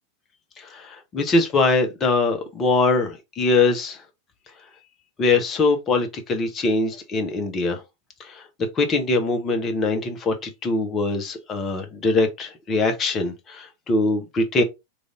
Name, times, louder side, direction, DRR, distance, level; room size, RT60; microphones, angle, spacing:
voice 1, 0.6-4.0 5.2-7.8 8.2-8.5 8.7-14.6, left 3 dB, 25° left, 0.9 m, -22 dB
3.3 x 2.6 x 3.7 m
figure-of-eight pair, 90°, 0 cm